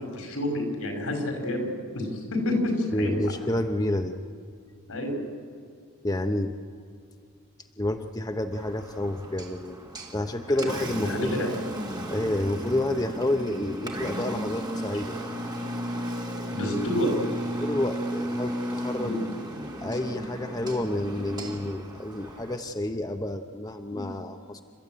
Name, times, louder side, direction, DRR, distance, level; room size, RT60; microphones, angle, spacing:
voice 1, 0.0-3.2 4.9-5.2 10.5-11.5 16.5-17.1 18.9-19.2 23.9-24.1, left 1 dB, 80° left, 3 dB, 5.3 m, -29 dB
voice 2, 2.9-4.2 6.0-6.5 7.8-9.8 10.1-11.4 12.1-15.2 17.6-19.2 19.8-24.6, left 1 dB, 15° left, 6 dB, 0.7 m, -29 dB
Engine, 8.5-22.6, equal, 20° right, 2.3 m, -34 dB
28.5 x 13.5 x 9.1 m, 2.3 s
head